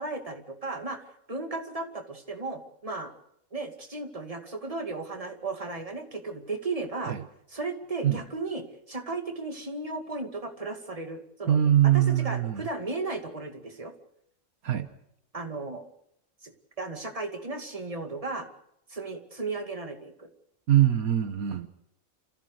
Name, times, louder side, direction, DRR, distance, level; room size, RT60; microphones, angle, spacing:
voice 1, 0.0-3.1 3.5-7.2 7.5-13.9 15.3-15.8 16.4-16.5 16.8-18.5 18.9-20.3, right 3 dB, 25° right, 2.4 m, -35 dB
voice 2, 11.5-12.7 14.6-14.9 20.7-21.7, right 11 dB, 80° right, 1.7 m, -23 dB
28.0 x 15.5 x 6.6 m
omnidirectional pair, 1.5 m